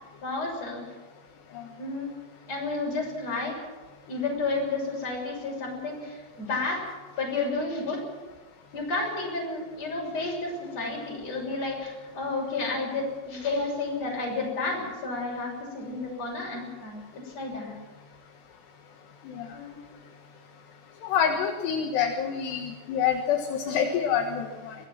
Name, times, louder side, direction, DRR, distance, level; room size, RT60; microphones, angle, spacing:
voice 1, 0.2-0.8 1.8-2.1 2.5-3.6 4.1-6.8 7.2-8.0 8.7-17.8 19.5-19.8, left 3 dB, 35° left, 0 dB, 7.6 m, -31 dB
voice 2, 21.0-24.7, left 8 dB, 70° left, 3 dB, 3.5 m, -27 dB
23.5 x 18.0 x 7.5 m, 1.3 s
omnidirectional pair, 5.2 m